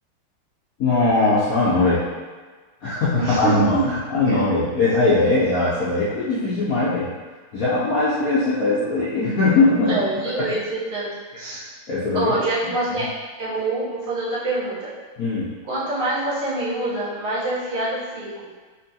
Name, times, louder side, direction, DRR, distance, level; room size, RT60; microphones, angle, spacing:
voice 1, 0.8-2.0 2.8-7.1 7.5-10.0 10.4-10.5 11.5-12.4 15.2-15.5, left 3 dB, 65° left, -10 dB, 0.8 m, -20 dB
voice 2, 3.2-3.9 4.3-4.4 9.9-11.6 12.1-13.1 13.4-14.9 15.7-18.5, right 2 dB, 80° right, -9 dB, 2.1 m, -26 dB
4.3 x 3.0 x 2.8 m, 1.4 s
omnidirectional pair, 2.3 m